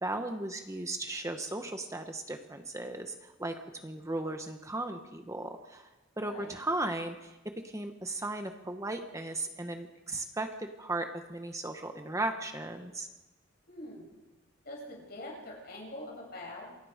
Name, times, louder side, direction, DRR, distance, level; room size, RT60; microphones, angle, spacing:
voice 1, 0.0-5.9 6.2-7.4 7.6-13.1, right 2 dB, 15° right, 5 dB, 1.2 m, -36 dB
voice 2, 6.1-6.5 13.7-14.1 14.6-16.8, left 1 dB, 50° left, -1 dB, 7.8 m, -44 dB
27.5 x 23.0 x 5.1 m, 1.1 s
head